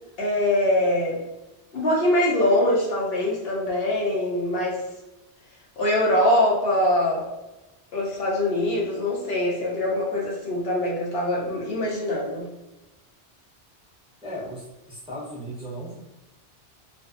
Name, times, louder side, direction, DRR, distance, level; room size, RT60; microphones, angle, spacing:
voice 1, 0.2-1.2 1.7-4.8 5.8-7.3 7.9-12.5, left 1 dB, 65° left, -3 dB, 0.8 m, -23 dB
voice 2, 14.2-15.9, equal, 5° right, -8 dB, 0.6 m, -36 dB
2.5 x 2.1 x 2.4 m, 1.0 s
omnidirectional pair, 1.2 m